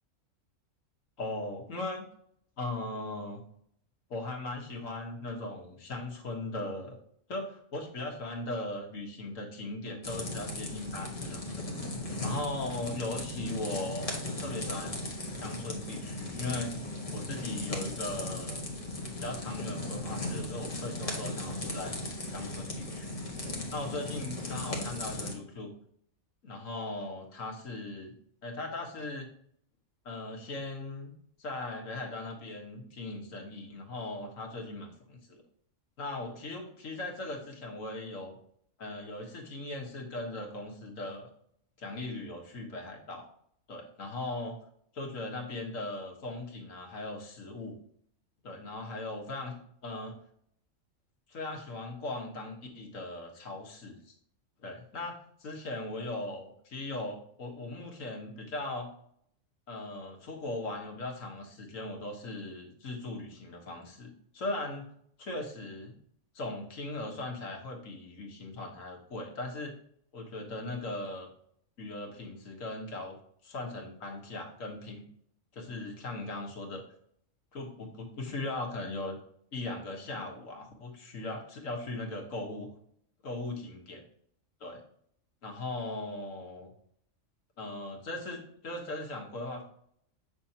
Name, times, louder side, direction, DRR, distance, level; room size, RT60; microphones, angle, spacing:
voice 1, 1.2-2.0 2.6-3.4 4.1-7.0 7.3-11.5 12.2-15.0 15.4-16.7 17.1-18.6 19.2-22.0 22.3-23.2 23.7-25.7 26.4-28.1 28.4-29.3 30.1-31.1 31.4-35.4 36.0-38.4 38.8-41.3 41.8-43.3 43.7-44.6 44.9-47.8 48.4-50.1 51.3-54.1 54.6-58.9 59.7-64.8 65.2-65.9 66.4-69.8 70.1-71.3 71.8-73.2 73.4-75.0 75.5-76.8 77.5-79.2 79.5-82.7 83.2-84.0 84.6-84.8 85.4-86.7 87.6-89.6, left 2 dB, 85° left, 2 dB, 1.8 m, -38 dB
sound 1, 10.0-25.3, left 1 dB, 30° left, 1.4 m, -37 dB
8.2 x 6.2 x 2.8 m, 0.66 s
omnidirectional pair, 1.3 m